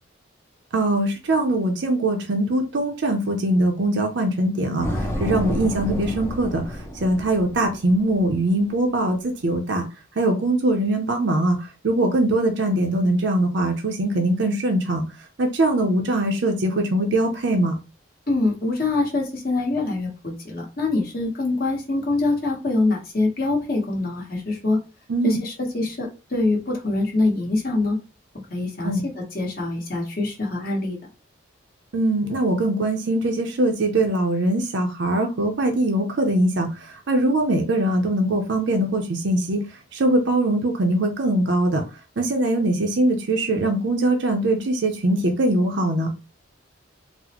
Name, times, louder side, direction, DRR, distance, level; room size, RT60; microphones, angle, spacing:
voice 1, 0.7-9.8 10.2-15.0 15.4-17.7 25.1-25.4 28.8-29.0 31.9-39.6 39.9-41.8 42.2-46.1, right 1 dB, 60° right, 0.5 m, -22 dB
sound 1, 4.8-8.5, equal, 10° left, 0.4 m, -30 dB
voice 2, 18.3-24.8 25.2-28.0 28.5-31.0, left 2 dB, 45° left, 1.1 m, -24 dB
3.9 x 2.0 x 2.9 m
head